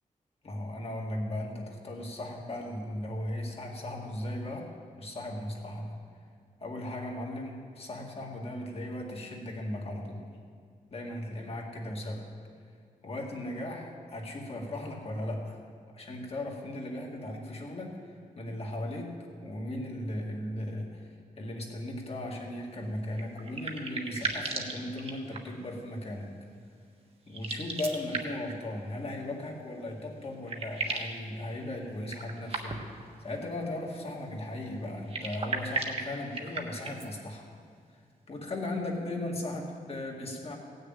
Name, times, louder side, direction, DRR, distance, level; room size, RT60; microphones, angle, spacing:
voice 1, 0.4-6.0 6.6-10.2 10.9-12.3 13.0-15.6 15.9-26.4 27.3-37.5 37.9-38.0 38.3-40.6, left 1 dB, 40° left, 0 dB, 2.0 m, -37 dB
sound 1, 23.1-25.7 27.3-28.6 29.9-30.0 30.2-31.2 32.0-33.0 34.9-37.1, right 3 dB, 40° right, 1.3 m, -36 dB
16.5 x 6.6 x 9.0 m, 2.1 s
wide cardioid pair, 170°, 15 cm